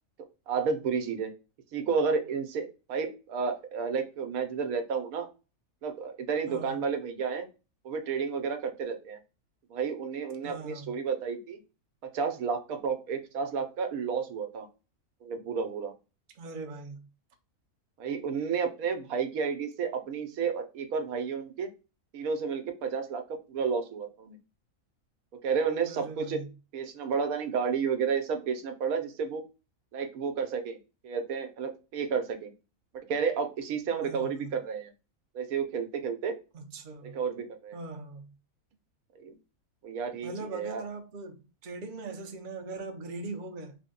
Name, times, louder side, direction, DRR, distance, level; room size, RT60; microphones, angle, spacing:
voice 1, 0.5-1.3 1.7-5.3 5.8-7.5 7.8-9.2 9.7-11.6 12.1-14.7 15.2-15.9 18.0-21.7 22.1-23.2 23.5-24.4 25.4-26.4 26.7-29.4 29.9-30.8 31.0-32.5 32.9-34.9 35.3-36.4 37.0-37.8 39.2-39.3 39.8-40.8, right 6 dB, 75° right, 1.1 m, -31 dB
voice 2, 6.5-6.8 10.4-10.9 16.4-17.1 25.8-26.5 34.0-34.5 36.5-37.2 37.7-38.3 40.2-43.8, right 3 dB, 50° right, 0.6 m, -40 dB
3.4 x 2.1 x 3.6 m
omnidirectional pair, 1.5 m